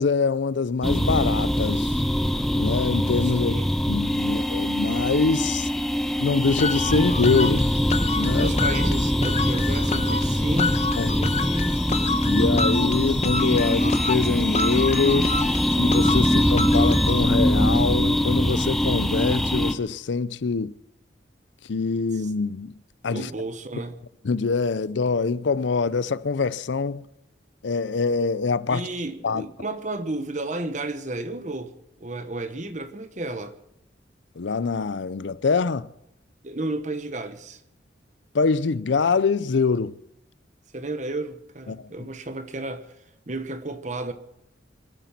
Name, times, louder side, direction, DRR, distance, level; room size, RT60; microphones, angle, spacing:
voice 1, 0.0-2.0 2.6-3.6 3.9-5.7 6.2-7.7 8.2-8.5 11.0-11.1 12.3-15.4 15.8-20.8 21.7-22.7 23.0-23.3 24.2-27.0 27.6-28.9 29.2-29.4 34.4-35.9 38.3-40.0 41.7-41.9, left 4 dB, 75° left, 0.5 m, -24 dB
sound 1, 0.8-19.7, equal, ahead, 0.8 m, -23 dB
voice 2, 3.2-3.7 6.9-7.0 8.3-11.4 22.1-22.3 23.1-24.0 28.7-31.7 32.0-33.6 36.4-37.6 40.7-42.9 43.3-44.1, right 2 dB, 40° right, 1.1 m, -33 dB
sound 2, 6.6-17.2, left 4 dB, 35° left, 1.0 m, -30 dB
25.5 x 9.2 x 5.9 m
head